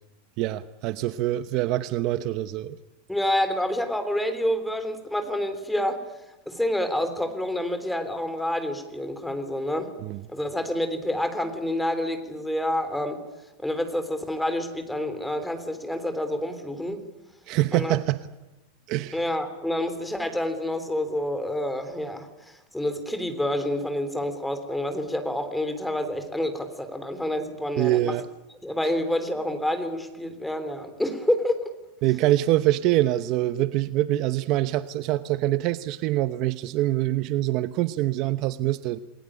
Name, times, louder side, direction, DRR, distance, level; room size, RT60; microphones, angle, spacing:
voice 1, 0.4-2.8 10.0-10.2 17.5-18.2 18.9-19.2 27.8-28.3 28.8-28.9 32.0-39.0, right 15 dB, 40° right, 12 dB, 0.9 m, -25 dB
voice 2, 3.1-6.0 6.5-9.9 10.3-13.2 13.6-17.0 17.7-18.0 19.1-28.1 28.6-31.7, left 1 dB, 5° left, 9 dB, 3.3 m, -28 dB
29.0 x 20.5 x 10.0 m, 1.0 s
supercardioid pair, 165°, 0 cm